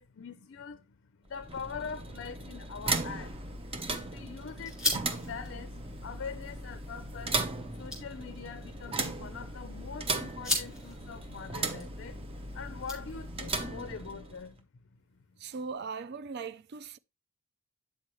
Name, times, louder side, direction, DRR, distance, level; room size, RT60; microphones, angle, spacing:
voice 1, 0.0-3.4 3.9-7.4 7.8-12.2 12.5-14.7, left 6 dB, 55° left, 0.5 m, -43 dB
sound 1, 1.3-14.6, right 3 dB, 25° right, 0.8 m, -37 dB
sound 2, 3.2-13.5, left 1 dB, 5° right, 2.5 m, -40 dB
voice 2, 15.4-17.0, right 5 dB, 45° right, 0.4 m, -39 dB
8.3 x 6.1 x 3.0 m
head